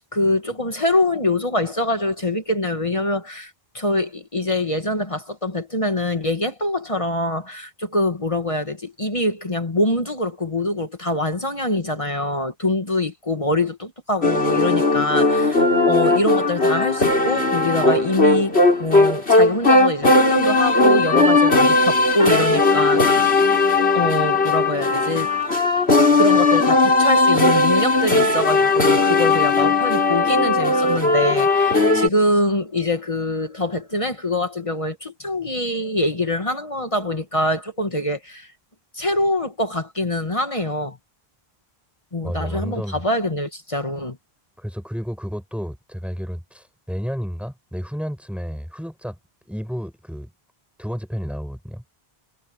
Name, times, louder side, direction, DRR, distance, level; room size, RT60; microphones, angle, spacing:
voice 1, 0.1-23.3 23.9-25.3 26.1-38.5 38.9-41.0 42.1-44.2, left 1 dB, 30° left, 1.9 m, -24 dB
sound 1, 14.2-32.1, left 3 dB, 80° left, 4.5 m, -17 dB
voice 2, 42.2-43.0 44.6-49.2 49.5-50.3 50.8-51.8, equal, ahead, 4.8 m, -31 dB
omnidirectional pair, 1.1 m